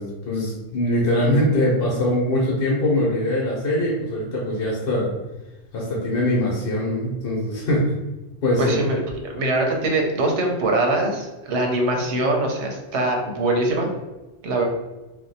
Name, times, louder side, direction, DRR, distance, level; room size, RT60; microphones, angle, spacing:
voice 1, 0.0-5.1 5.7-7.9 8.4-8.8, left 1 dB, 60° left, -4 dB, 0.9 m, -22 dB
voice 2, 8.6-9.0 9.3-13.9 14.4-14.6, right 2 dB, 90° right, 1 dB, 1.0 m, -22 dB
2.6 x 2.1 x 4.0 m, 1.1 s
omnidirectional pair, 1.2 m